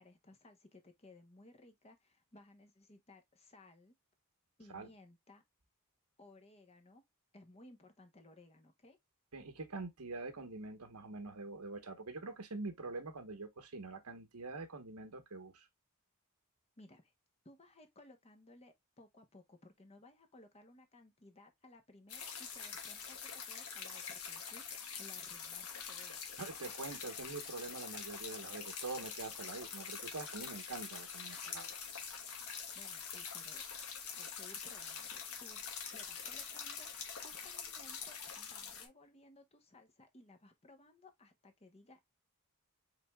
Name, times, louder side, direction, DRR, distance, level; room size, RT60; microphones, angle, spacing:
voice 1, 0.0-3.9 4.6-5.4 6.2-7.0 7.3-9.0 16.8-17.1 17.4-26.2 32.7-33.6 34.1-35.6 35.9-42.1, left 2 dB, 30° left, 1.0 m, -60 dB
voice 2, 9.3-15.7 26.4-31.8, right 3 dB, 85° right, 1.2 m, -45 dB
sound 1, 22.1-38.9, left 6 dB, 75° left, 1.3 m, -45 dB
5.1 x 4.3 x 2.3 m
head